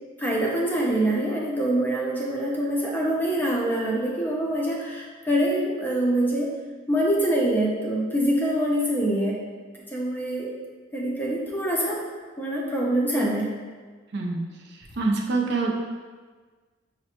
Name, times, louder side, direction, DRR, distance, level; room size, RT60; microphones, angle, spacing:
voice 1, 0.2-6.5 6.9-9.4 9.9-10.5 10.9-12.0 12.4-13.5, right 1 dB, 10° left, -3 dB, 0.4 m, -25 dB
voice 2, 15.0-15.7, right 3 dB, 55° right, 0 dB, 0.4 m, -25 dB
5.7 x 2.1 x 2.9 m, 1.4 s
head